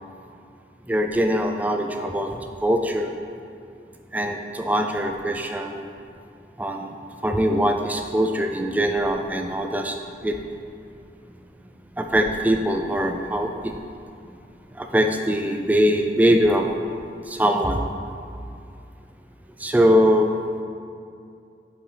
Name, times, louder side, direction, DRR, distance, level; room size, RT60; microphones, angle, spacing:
voice 1, 0.9-3.1 4.1-5.9 6.6-6.9 7.2-10.4 12.0-13.8 14.7-16.7 17.3-17.9 19.6-20.3, equal, 10° right, 4 dB, 0.3 m, -22 dB
8.3 x 4.7 x 5.0 m, 2.5 s
head